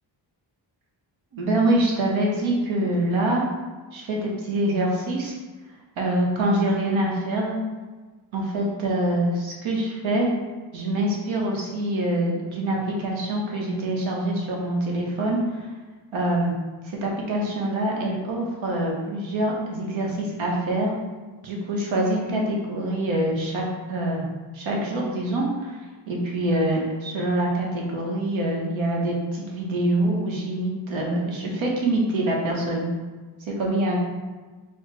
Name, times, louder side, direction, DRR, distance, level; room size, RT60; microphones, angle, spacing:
voice 1, 1.3-3.4 3.9-5.3 6.0-7.5 8.3-10.3 10.7-15.7 16.1-16.5 16.8-20.9 21.4-24.3 24.5-25.8 26.1-32.9 33.6-34.0, right 1 dB, 85° right, -2 dB, 0.9 m, -25 dB
3.4 x 2.1 x 4.1 m, 1.3 s
cardioid pair, 70°, 46 cm